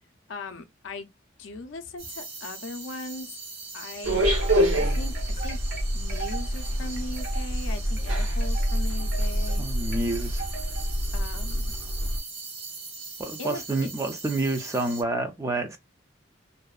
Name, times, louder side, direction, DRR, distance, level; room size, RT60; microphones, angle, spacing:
voice 1, 0.3-1.1 1.4-3.3 3.7-4.3 4.7-5.6 5.9-9.6 11.1-11.7 13.4-13.9, left 2 dB, 75° left, 0.5 m, -39 dB
sound 1, 2.0-15.0, right 4 dB, 65° right, 1.2 m, -41 dB
sound 2, 4.0-12.2, equal, 80° right, 0.7 m, -26 dB
sound 3, 4.4-11.0, right 5 dB, 45° right, 0.7 m, -41 dB
voice 2, 9.6-10.4 13.2-15.8, right 2 dB, 15° right, 0.3 m, -28 dB
2.5 x 2.1 x 2.3 m
head